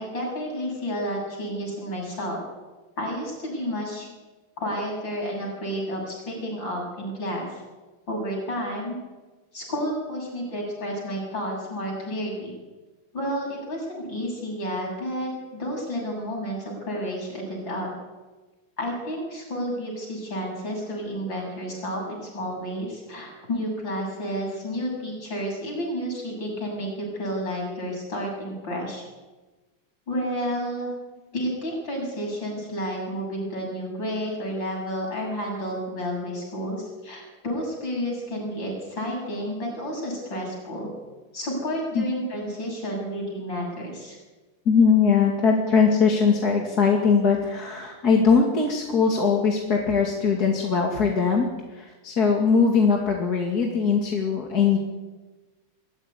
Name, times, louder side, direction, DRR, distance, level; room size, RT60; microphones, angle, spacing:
voice 1, 0.0-2.4 3.0-4.1 4.6-7.6 8.1-9.0 9.5-12.5 13.1-17.9 18.8-29.0 30.1-30.9 31.3-40.9 41.3-44.2, equal, 65° left, -1 dB, 8.5 m, -31 dB
voice 2, 44.7-51.5 51.7-54.8, left 5 dB, 50° left, 0 dB, 2.8 m, -21 dB
23.0 x 14.5 x 9.8 m, 1.2 s
omnidirectional pair, 2.2 m